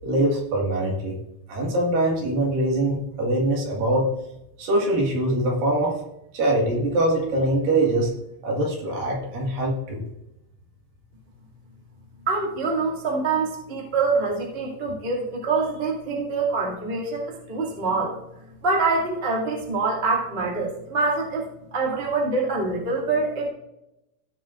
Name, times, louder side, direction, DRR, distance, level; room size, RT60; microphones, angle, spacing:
voice 1, 0.0-1.1 1.5-4.1 4.6-6.0 6.3-8.1 8.4-10.0, right 1 dB, 55° right, -2 dB, 3.3 m, -23 dB
voice 2, 12.3-18.1 18.6-23.5, right 3 dB, 25° right, -3 dB, 1.2 m, -25 dB
17.5 x 7.1 x 2.5 m, 0.86 s
omnidirectional pair, 5.3 m